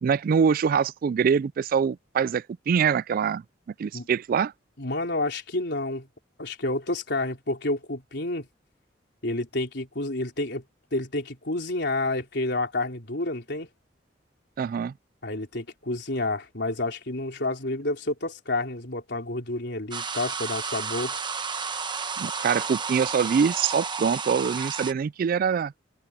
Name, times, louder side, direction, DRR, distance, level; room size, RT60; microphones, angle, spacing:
voice 1, 0.0-3.4 3.8-4.5 14.6-14.9 22.2-25.7, right 6 dB, 50° right, 0.3 m, -24 dB
voice 2, 4.8-6.1 6.4-8.5 9.2-10.6 10.9-13.7 15.2-21.2, left 2 dB, 65° left, 4.2 m, -29 dB
sound 1, 19.9-24.9, right 5 dB, 25° right, 1.1 m, -32 dB
head